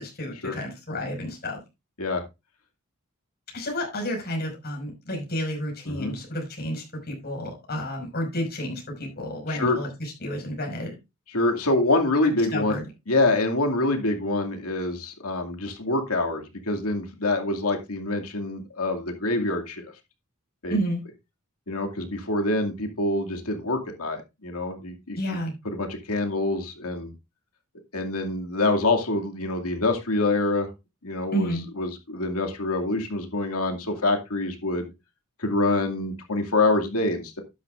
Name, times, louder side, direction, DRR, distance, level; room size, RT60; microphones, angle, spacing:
voice 1, 0.0-1.6 3.5-10.9 12.5-12.8 20.7-21.0 25.2-25.6 31.3-31.7, equal, 45° left, 5.5 m, -31 dB
voice 2, 9.5-9.8 11.3-12.8 13.1-19.9 20.6-20.8 21.7-25.2 25.6-27.1 27.9-30.7 31.0-34.9 35.4-37.4, left 2 dB, 80° left, 2.4 m, -26 dB
12.0 x 10.0 x 2.5 m
head